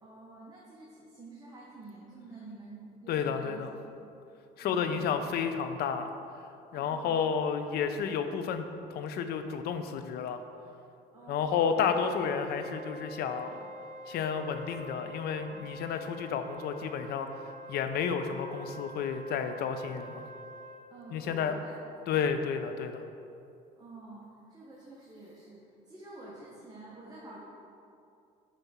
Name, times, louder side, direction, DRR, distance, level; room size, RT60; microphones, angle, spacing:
voice 1, 0.0-3.7 3.9-4.1 4.6-5.1 6.7-7.2 11.1-12.0 20.9-22.2 23.7-27.4, right 2 dB, 25° right, -5 dB, 0.9 m, -49 dB
voice 2, 3.1-3.7 4.6-6.1 6.7-10.4 11.3-13.6 14.1-17.3 17.7-20.3 21.1-21.6 22.1-23.0, left 7 dB, 70° left, 8 dB, 0.5 m, -31 dB
Wind instrument woodwind instrument, 11.7-20.8, right 1 dB, 45° right, 0.7 m, -46 dB
7.0 x 3.4 x 4.2 m, 2.6 s
cardioid pair, 110°, 17 cm